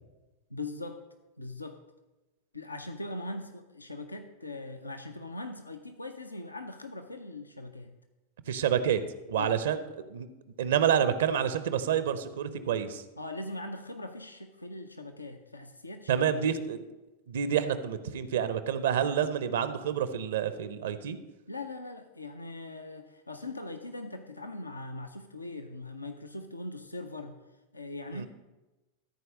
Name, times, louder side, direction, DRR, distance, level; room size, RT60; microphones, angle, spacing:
voice 1, 0.5-1.0 1.4-1.8 2.5-7.9 9.3-9.6 13.2-16.3 21.5-27.4 27.7-28.3, left 2 dB, 80° left, 6 dB, 0.6 m, -40 dB
voice 2, 8.5-9.0 9.3-9.8 10.1-10.3 10.6-13.0 16.1-16.8 17.3-21.2 28.1-28.3, right 8 dB, 60° right, 12 dB, 0.7 m, -28 dB
13.5 x 4.6 x 6.3 m, 1.1 s
figure-of-eight pair, 90°, 0 cm